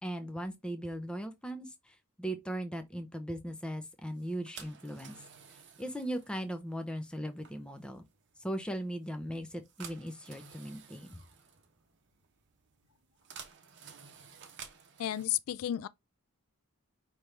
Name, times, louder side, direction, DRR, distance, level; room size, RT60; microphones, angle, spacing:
voice 1, 0.0-5.2 5.8-8.0 8.4-11.2, right 1 dB, 5° left, 0.6 m, -38 dB
sound 1, 4.1-15.2, right 7 dB, 50° right, 0.8 m, -53 dB
voice 2, 15.0-15.9, left 12 dB, 75° left, 0.3 m, -32 dB
5.2 x 3.0 x 3.2 m
head